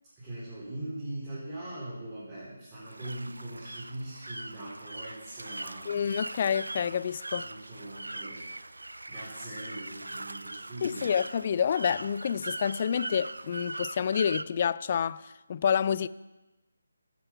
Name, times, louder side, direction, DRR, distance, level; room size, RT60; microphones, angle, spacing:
voice 1, 0.0-6.1 7.4-11.1, right 1 dB, 15° right, 3.8 m, -41 dB
sound 1, 2.9-14.4, right 2 dB, 90° right, 0.5 m, -41 dB
voice 2, 5.9-7.5 10.8-16.1, left 7 dB, 35° left, 0.3 m, -28 dB
12.0 x 9.4 x 5.9 m
figure-of-eight pair, 160°, 0 cm